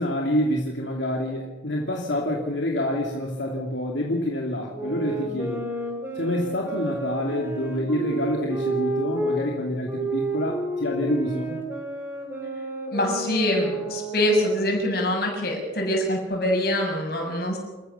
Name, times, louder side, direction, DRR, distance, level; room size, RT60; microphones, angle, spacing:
voice 1, 0.0-5.7 6.1-11.6, left 1 dB, 80° left, 0 dB, 2.7 m, -27 dB
sound 1, 4.7-9.4 9.9-14.8, right 2 dB, 10° right, 4.1 m, -31 dB
voice 2, 12.9-17.6, left 1 dB, 55° left, 1 dB, 6.9 m, -24 dB
28.5 x 14.5 x 6.9 m, 1.2 s
head